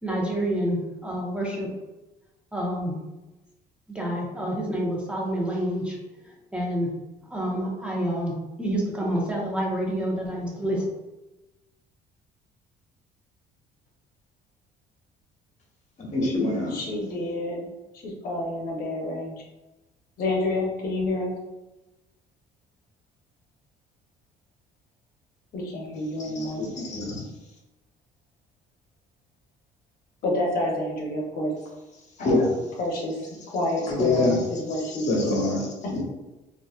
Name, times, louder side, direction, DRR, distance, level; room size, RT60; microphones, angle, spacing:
voice 1, 0.0-1.7 2.5-3.0 3.9-6.0 6.2-6.9 7.3-10.8, right 1 dB, 5° right, -3 dB, 1.0 m, -28 dB
voice 2, 16.1-16.7 26.3-27.2 32.2-32.5 33.9-34.4 35.1-35.7 35.9-36.0, left 2 dB, 45° left, -3 dB, 1.3 m, -24 dB
voice 3, 16.7-17.6 18.0-19.4 20.2-21.3 25.5-26.6 30.2-31.5 32.2-32.5 32.8-33.2 33.5-35.2 35.8-36.0, left 1 dB, 60° left, -2 dB, 0.9 m, -28 dB
3.9 x 2.5 x 2.4 m, 1.1 s
cardioid pair, 110°, 17 cm